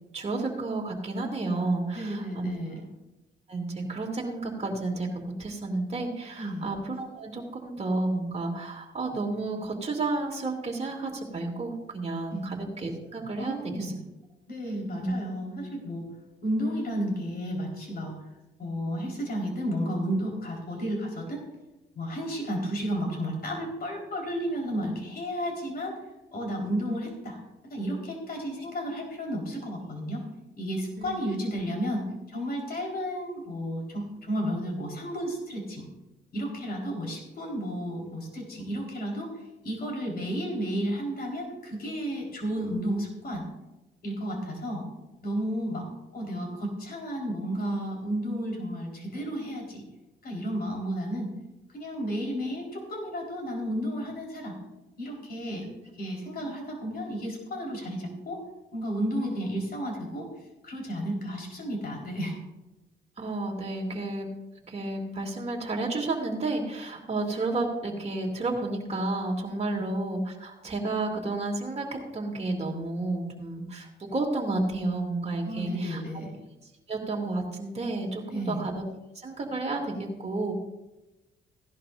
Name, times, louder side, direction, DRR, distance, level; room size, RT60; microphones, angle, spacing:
voice 1, 0.1-2.5 3.5-13.9 14.9-15.1 31.0-31.1 56.4-56.5 63.2-64.3 64.6-76.0 76.9-78.8 79.1-80.5, right 2 dB, 30° right, 0 dB, 2.7 m, -31 dB
voice 2, 1.9-2.8 6.4-6.7 12.3-12.5 13.4-14.0 14.5-16.1 16.4-18.1 18.6-21.4 22.0-26.0 26.3-27.4 27.7-30.2 30.6-35.8 36.3-39.3 39.6-43.4 44.0-44.8 45.2-45.9 46.1-49.8 50.2-51.3 51.7-54.6 55.0-55.7 56.0-58.4 58.7-60.3 60.6-62.4 69.7-69.8 75.4-76.3 78.3-78.6, equal, 50° left, 0 dB, 4.4 m, -32 dB
16.5 x 11.0 x 2.6 m, 1.0 s
cardioid pair, 90°, 20 cm